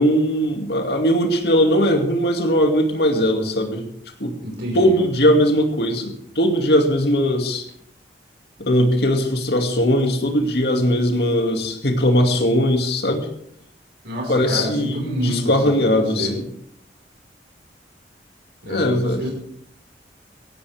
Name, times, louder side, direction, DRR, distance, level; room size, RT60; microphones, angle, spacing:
voice 1, 0.0-3.9 4.2-4.3 4.7-7.6 8.6-13.3 14.3-16.5 18.7-19.3, equal, 65° left, 4 dB, 2.5 m, -19 dB
voice 2, 4.4-5.0 14.0-16.4 18.6-19.3, equal, 70° right, -1 dB, 5.2 m, -29 dB
17.0 x 16.5 x 3.6 m, 0.70 s
head